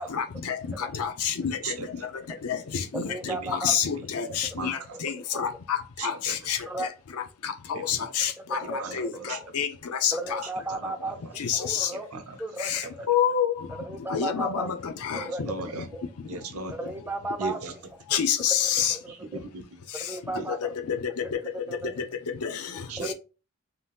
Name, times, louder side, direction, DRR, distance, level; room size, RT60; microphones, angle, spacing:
voice 1, 0.1-1.6 2.4-3.1 3.5-6.9 7.4-9.7 10.0-10.4 11.4-11.9 12.6-13.5 14.1-15.5 18.1-19.0 20.6-21.0 22.4-22.5 23.1-23.2, left 8 dB, 85° left, 0.5 m, -28 dB
voice 2, 3.0-3.7 4.6-5.4 6.7-6.9 8.5-9.1 9.4-9.5 10.1-12.1 12.4-13.1 13.8-14.7 15.1-15.4 15.9-16.0 16.7-17.8 18.1-18.2 18.6-19.4 19.9-20.7 21.1-21.9 23.0-23.1, right 2 dB, 10° right, 0.3 m, -35 dB
voice 3, 6.0-6.3 7.7-8.0 8.8-9.0 9.3-9.4 10.7-10.9 12.1-12.2 15.4-15.8 16.3-16.7 17.4-17.7 19.2-19.8 20.3-20.4 22.9-23.1, right 4 dB, 75° right, 0.6 m, -36 dB
2.7 x 2.3 x 3.4 m
head